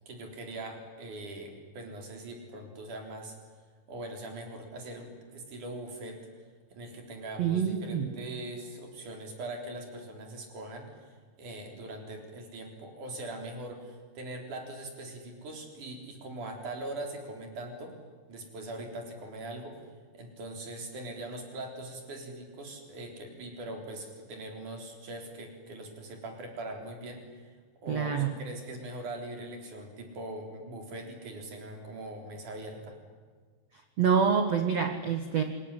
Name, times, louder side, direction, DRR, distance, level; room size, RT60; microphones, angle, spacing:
voice 1, 0.1-3.4 3.9-6.3 6.7-10.9 11.4-18.0 18.3-19.8 20.1-27.6 27.8-33.0, right 1 dB, 45° right, 3 dB, 5.0 m, -41 dB
voice 2, 7.4-8.1 27.9-28.3 34.0-35.4, right 7 dB, 85° right, 6 dB, 1.4 m, -26 dB
26.0 x 21.5 x 10.0 m, 1.5 s
omnidirectional pair, 5.5 m